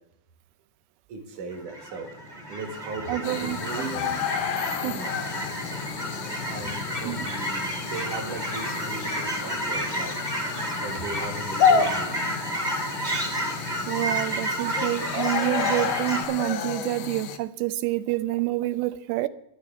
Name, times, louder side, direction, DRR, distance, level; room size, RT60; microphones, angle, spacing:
voice 1, 1.1-2.1 2.5-4.2 4.8-5.2 6.5-10.2 10.8-12.2 14.6-14.7, right 3 dB, 60° right, 3 dB, 2.9 m, -37 dB
Fowl / Chirp tweet, 1.5-16.2, right 1 dB, 40° right, 0.5 m, -31 dB
voice 2, 3.1-3.6 4.8-5.0 7.1-7.3 13.9-19.3, right 16 dB, 90° right, 13 dB, 2.5 m, -28 dB
sound 1, 3.2-17.4, left 6 dB, 90° left, 1.6 m, -30 dB
18.5 x 10.5 x 3.5 m, 0.82 s
omnidirectional pair, 4.3 m